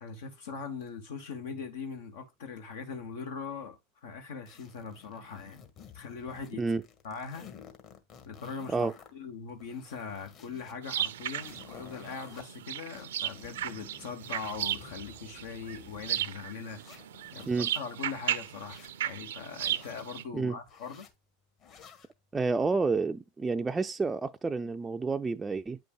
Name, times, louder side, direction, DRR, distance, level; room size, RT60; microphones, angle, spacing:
voice 1, 0.0-5.7 5.9-6.6 7.0-7.5 8.2-21.1, left 5 dB, 75° left, 1.0 m, -41 dB
sound 1, 4.5-6.5 6.8-9.1 9.5-10.7 11.1-12.4 12.9-16.2 16.6-17.8 18.3-18.9 19.5-20.0 20.6-21.1 21.6-22.1, left 7 dB, 45° left, 1.5 m, -53 dB
sound 2, 10.8-20.2, right 11 dB, 80° right, 0.6 m, -36 dB
voice 2, 22.3-25.8, right 4 dB, 15° right, 0.4 m, -29 dB
8.9 x 5.4 x 2.3 m
hypercardioid pair, 95°, 0 cm